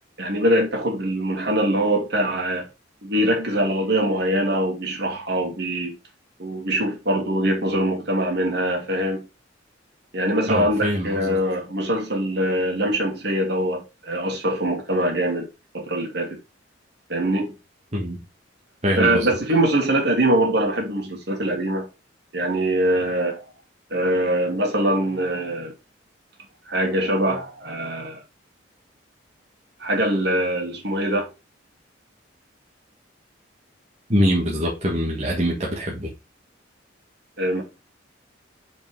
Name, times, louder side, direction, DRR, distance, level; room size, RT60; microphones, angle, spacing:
voice 1, 0.2-2.7 3.0-6.0 6.4-9.3 10.1-15.5 15.7-16.3 17.1-17.5 19.0-21.9 22.3-23.4 23.9-25.7 26.7-28.2 29.8-31.3 37.4-37.6, right 1 dB, 60° right, 2.6 m, -23 dB
voice 2, 10.5-11.4 17.9-18.2 18.8-19.3 34.1-36.1, equal, 35° right, 1.7 m, -23 dB
5.3 x 5.2 x 4.7 m
head